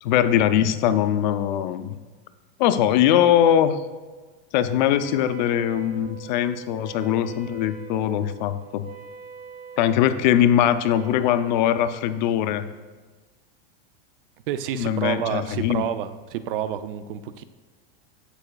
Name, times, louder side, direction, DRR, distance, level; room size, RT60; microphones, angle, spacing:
voice 1, 0.0-2.0 2.6-3.8 4.5-8.9 9.8-12.6 14.7-15.8, left 10 dB, 50° left, 11 dB, 0.4 m, -21 dB
Wind instrument woodwind instrument, 4.9-11.5, right 7 dB, 40° right, 1.8 m, -42 dB
voice 2, 14.5-17.4, right 10 dB, 65° right, 12 dB, 0.5 m, -29 dB
14.0 x 4.8 x 2.3 m, 1.4 s
supercardioid pair, 165°, 29 cm